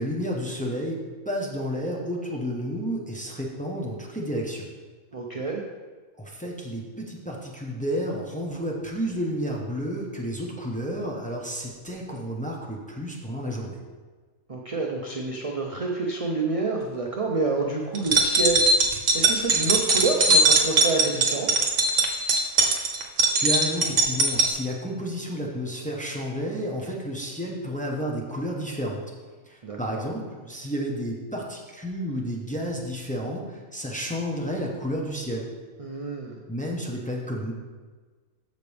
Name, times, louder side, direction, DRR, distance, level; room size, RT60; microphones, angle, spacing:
voice 1, 0.0-4.7 6.2-13.8 23.4-29.0 29.5-35.5 36.5-37.5, equal, 5° left, -2 dB, 0.9 m, -31 dB
voice 2, 5.1-5.6 14.5-18.6 19.1-21.6 29.6-30.1 35.8-36.4, right 3 dB, 35° right, 0 dB, 0.5 m, -28 dB
sound 1, 18.0-24.5, right 2 dB, 60° right, 1.3 m, -20 dB
13.5 x 5.1 x 3.4 m, 1.4 s
omnidirectional pair, 1.5 m